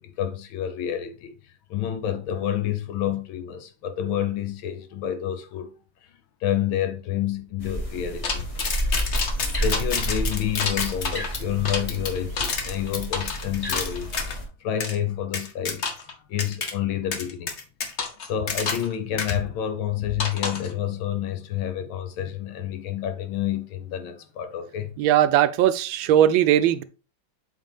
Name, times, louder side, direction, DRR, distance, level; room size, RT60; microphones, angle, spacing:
voice 1, 0.0-1.3 1.7-5.7 6.4-8.5 9.6-14.2 14.6-15.8 16.3-17.5 18.2-24.9, left 10 dB, 75° left, 1.6 m, -29 dB
sound 1, 7.6-14.5, equal, 20° left, 1.1 m, -30 dB
sound 2, 8.2-14.4 14.8-15.0 15.3-16.1 16.4-16.7 17.1-18.9 19.2-19.3 20.2-20.7, left 5 dB, 50° left, 0.9 m, -29 dB
voice 2, 25.0-26.8, right 11 dB, 80° right, 1.3 m, -19 dB
7.7 x 4.1 x 3.5 m
omnidirectional pair, 2.2 m